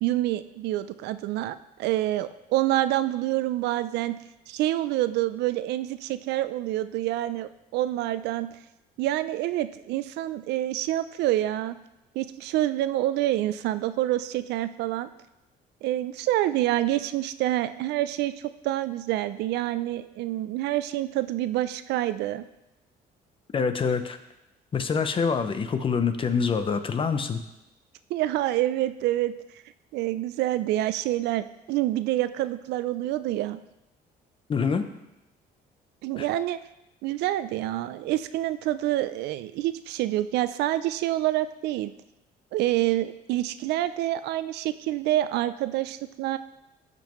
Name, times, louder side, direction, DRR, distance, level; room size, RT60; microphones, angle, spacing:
voice 1, 0.0-4.2 4.5-8.5 9.0-11.8 12.2-15.1 15.8-18.3 18.6-22.4 28.1-29.3 29.9-33.6 36.0-36.6 37.0-41.9 42.5-46.4, right 14 dB, 80° right, 13 dB, 0.4 m, -27 dB
voice 2, 23.5-24.2 24.7-27.4 34.5-34.8 36.2-36.3, left 5 dB, 30° left, 9 dB, 0.7 m, -25 dB
13.0 x 5.3 x 3.1 m, 0.92 s
cardioid pair, 110°, 17 cm